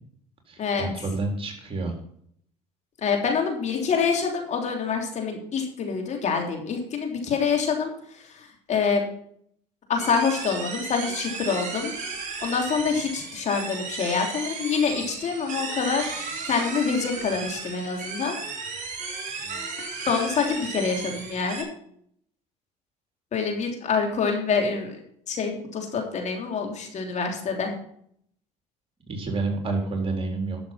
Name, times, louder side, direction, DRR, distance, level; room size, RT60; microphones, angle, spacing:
voice 1, 0.5-1.9 19.4-19.6 29.1-30.6, right 3 dB, 35° right, 2 dB, 4.0 m, -29 dB
voice 2, 3.0-8.2 8.7-9.0 9.9-11.9 12.4-18.4 20.1-21.7 23.3-25.0 25.3-27.7, left 5 dB, 50° left, 2 dB, 3.3 m, -26 dB
sound 1, 10.0-21.6, right 4 dB, 50° right, 5.6 m, -34 dB
12.0 x 7.1 x 5.7 m, 0.65 s
supercardioid pair, 75°, 16 cm